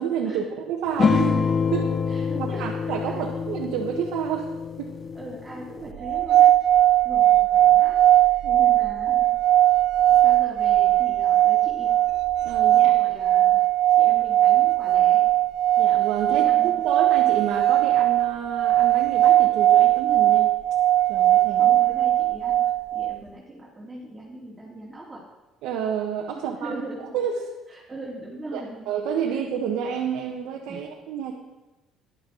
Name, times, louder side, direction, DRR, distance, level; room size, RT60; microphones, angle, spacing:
voice 1, 0.0-4.5 4.8-4.9 8.4-8.8 12.4-13.2 15.8-20.5 21.1-21.8 25.6-26.8 27.1-27.4 28.5-31.3, right 8 dB, 85° right, 0 dB, 1.2 m, -30 dB
sound 1, 1.0-5.9, left 6 dB, 30° left, 0.5 m, -26 dB
voice 2, 2.1-3.3 5.1-6.5 7.0-9.4 10.1-12.0 12.7-13.6 13.9-15.2 16.3-16.7 21.6-22.6 22.9-25.2 26.3-27.1 27.7-28.9 29.2-29.4 30.7-30.8, right 1 dB, 15° right, -7 dB, 2.7 m, -40 dB
sound 2, 6.0-23.2, right 13 dB, 70° right, 0.3 m, -19 dB
13.0 x 11.0 x 4.0 m, 1.1 s
cardioid pair, 125°, 0 cm